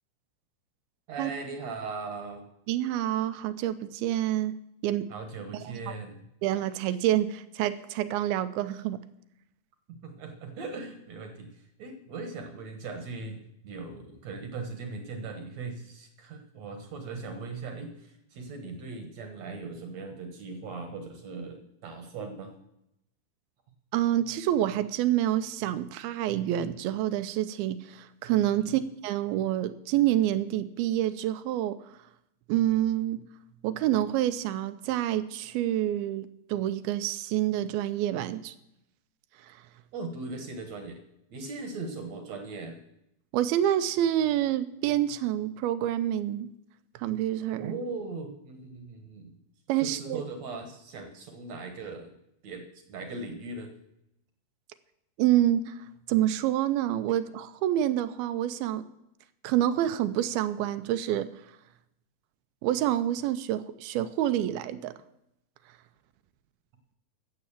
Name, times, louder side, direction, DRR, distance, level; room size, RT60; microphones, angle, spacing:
voice 1, 1.1-2.4 5.1-6.2 9.9-11.5 11.8-22.5 28.6-28.8 39.9-41.0 41.3-42.8 47.6-49.4 49.8-52.1 52.4-53.7, right 3 dB, 60° right, 6 dB, 2.1 m, -39 dB
voice 2, 2.7-4.6 4.8-5.1 5.9-6.0 6.4-9.0 23.9-31.8 32.5-33.2 33.6-38.5 39.5-39.6 43.3-46.5 47.0-47.7 49.7-50.2 55.2-55.8 56.1-58.8 59.4-61.3 62.6-64.9, right 12 dB, 85° right, 12 dB, 2.5 m, -27 dB
13.5 x 7.7 x 7.2 m, 0.82 s
omnidirectional pair, 4.4 m